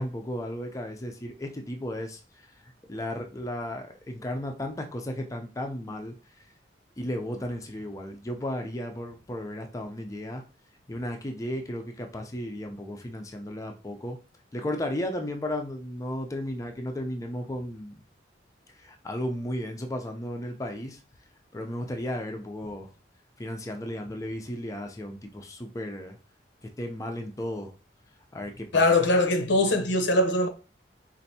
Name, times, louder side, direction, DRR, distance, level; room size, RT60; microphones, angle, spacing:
voice 1, 0.0-2.2 2.6-6.1 7.0-10.4 10.9-14.2 14.5-18.0 18.8-21.0 21.5-22.9 23.4-26.2 26.6-27.7 28.3-29.0, left 1 dB, 20° left, 0.4 m, -34 dB
voice 2, 28.7-30.5, left 2 dB, 80° left, 0.7 m, -22 dB
4.3 x 2.5 x 2.7 m
head